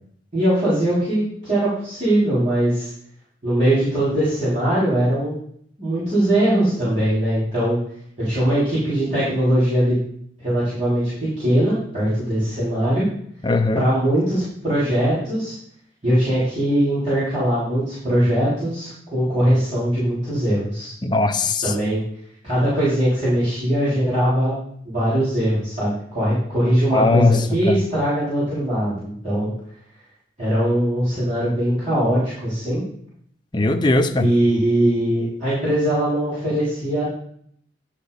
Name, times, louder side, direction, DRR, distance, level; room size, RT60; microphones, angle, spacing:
voice 1, 0.3-2.9 3.4-5.3 5.8-7.8 8.2-10.0 10.4-13.0 13.7-15.5 16.0-20.9 21.6-22.0 22.4-24.6 24.8-29.5 30.4-32.8 34.2-37.0, right 1 dB, 35° right, -13 dB, 4.1 m, -21 dB
voice 2, 13.4-13.8 21.0-21.7 26.9-27.4 27.7-27.8 33.5-34.3, left 3 dB, 25° left, 5 dB, 0.6 m, -19 dB
11.0 x 4.6 x 5.0 m, 0.66 s
head